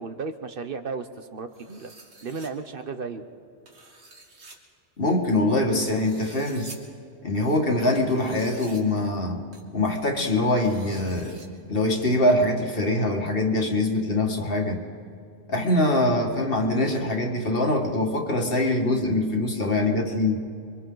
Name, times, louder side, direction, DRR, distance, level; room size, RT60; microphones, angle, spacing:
voice 1, 0.0-1.9 2.2-3.2, right 4 dB, 55° right, 8 dB, 1.0 m, -34 dB
sound 1, 1.5-2.5 3.7-4.6 5.8-6.8 7.9-8.8 9.5-9.6 10.4-11.5, right 2 dB, 75° right, 2.3 m, -47 dB
voice 2, 5.0-6.7 7.2-9.4 9.7-11.4 11.7-14.8 15.5-20.4, left 1 dB, 55° left, 2 dB, 2.1 m, -23 dB
28.5 x 23.5 x 3.9 m, 2.5 s
omnidirectional pair, 1.2 m